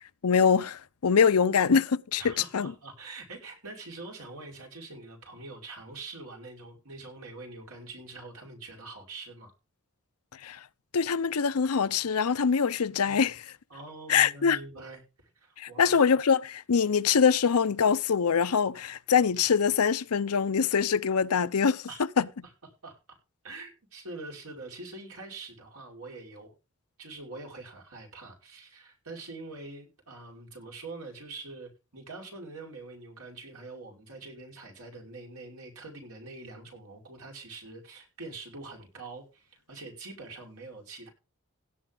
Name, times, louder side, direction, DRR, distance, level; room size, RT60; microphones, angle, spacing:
voice 1, 0.2-2.7 10.4-10.6 10.9-13.5 14.1-14.6 15.6-21.9 22.2-22.3, left 6 dB, 85° left, 0.6 m, -24 dB
voice 2, 2.2-9.5 13.0-13.3 13.7-16.1 21.9-22.0 22.4-22.5 22.8-23.2 23.4-26.5 27.0-41.1, right 3 dB, 80° right, 5.3 m, -44 dB
17.0 x 7.7 x 3.8 m
head